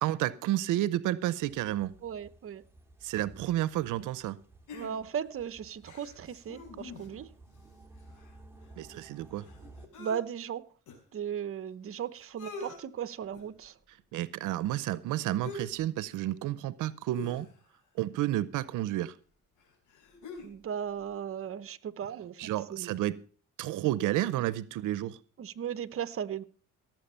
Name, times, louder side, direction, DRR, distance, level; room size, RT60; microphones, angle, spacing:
voice 1, 0.0-1.9 3.0-4.4 8.8-9.5 14.1-17.5 18.0-19.1 22.4-23.2 23.6-25.2, right 14 dB, 85° right, 0.6 m, -31 dB
sound 1, 1.4-9.9, right 2 dB, 10° right, 2.1 m, -55 dB
voice 2, 2.0-2.6 4.7-7.3 8.9-9.1 10.0-10.6 11.1-13.7 20.4-22.9 25.4-26.4, right 8 dB, 45° right, 0.8 m, -37 dB
sound 2, 4.7-5.3 5.8-7.3 7.6-7.7 7.9-10.2 10.9-11.0 11.8-11.9 12.2-12.8 13.3-13.6 15.4-15.8 16.1-16.3 17.1-17.8 18.9-19.0 19.6-20.6 20.9-21.0, left 3 dB, 80° left, 4.8 m, -46 dB
17.0 x 7.5 x 5.5 m
cardioid pair, 90°, 30 cm